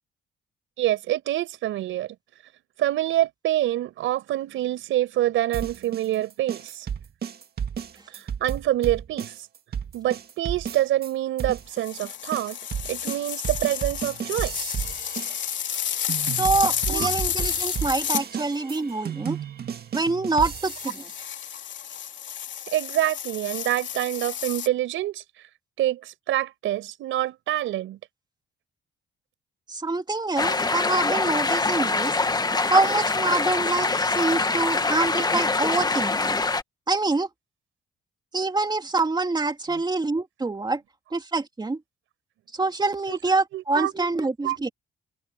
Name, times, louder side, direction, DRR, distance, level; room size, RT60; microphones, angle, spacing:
voice 1, 0.8-2.2 2.8-6.9 8.1-9.3 9.9-12.6 12.8-14.7 16.9-17.1 22.7-25.2 25.8-28.0 43.1-43.2 43.5-43.9 44.4-44.6, right 14 dB, 85° right, 5.2 m, -26 dB
sound 1, 5.5-11.1 11.4-21.1, right 8 dB, 50° right, 2.0 m, -33 dB
sound 2, 11.8-18.3 20.4-24.7, left 9 dB, 65° left, 3.5 m, -31 dB
voice 2, 16.2-19.4 19.9-21.0 29.7-32.1 32.7-36.4 36.9-37.3 38.3-40.8 41.1-41.8 42.5-44.7, right 3 dB, 20° right, 2.4 m, -25 dB
sound 3, 30.4-36.6, left 3 dB, 20° left, 1.3 m, -24 dB
cardioid pair, 90°, 20 cm